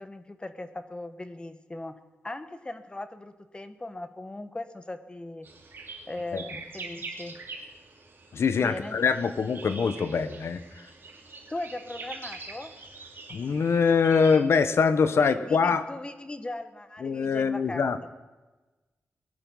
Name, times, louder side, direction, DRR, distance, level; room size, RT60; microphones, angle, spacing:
voice 1, 0.0-1.9 2.2-5.5 6.1-7.4 8.6-9.0 11.5-12.7 15.2-18.1, left 2 dB, 20° left, 10 dB, 1.1 m, -39 dB
sound 1, 5.4-14.4, right 3 dB, 50° right, 2.9 m, -44 dB
voice 2, 8.3-10.8 13.3-15.8 17.0-18.1, left 5 dB, 70° left, 11 dB, 1.0 m, -24 dB
20.0 x 11.0 x 5.6 m, 1.2 s
wide cardioid pair, 100°, 5 cm